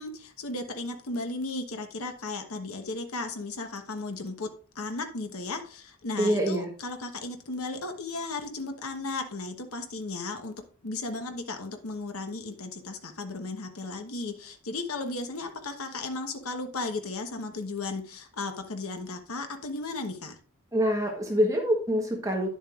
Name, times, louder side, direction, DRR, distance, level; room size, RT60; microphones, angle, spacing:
voice 1, 0.0-4.5 4.7-10.5 10.8-20.4, left 3 dB, 75° left, 5 dB, 1.1 m, -35 dB
voice 2, 6.2-6.7 20.7-22.5, equal, 15° right, 1 dB, 1.1 m, -25 dB
10.0 x 7.3 x 2.4 m, 0.42 s
head